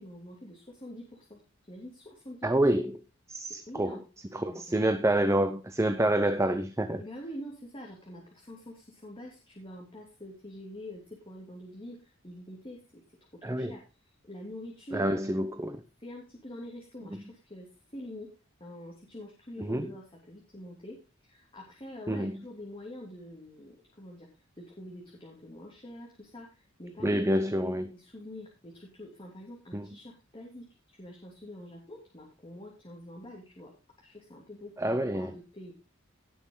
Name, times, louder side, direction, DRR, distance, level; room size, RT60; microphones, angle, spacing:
voice 1, 0.0-1.4 1.7-2.6 3.7-4.0 4.5-4.8 7.0-13.0 13.5-15.1 16.0-18.3 18.6-21.0 21.2-24.3 24.6-27.2 27.6-33.7 34.0-35.7, left 1 dB, 25° left, -1 dB, 3.0 m, -46 dB
voice 2, 2.4-3.0 3.3-4.0 4.3-7.0 13.4-13.8 14.9-15.8 19.6-19.9 22.1-22.4 27.0-27.9 29.7-29.9 34.8-35.3, right 1 dB, 15° right, 9 dB, 0.8 m, -27 dB
17.5 x 6.2 x 3.9 m, 0.30 s
head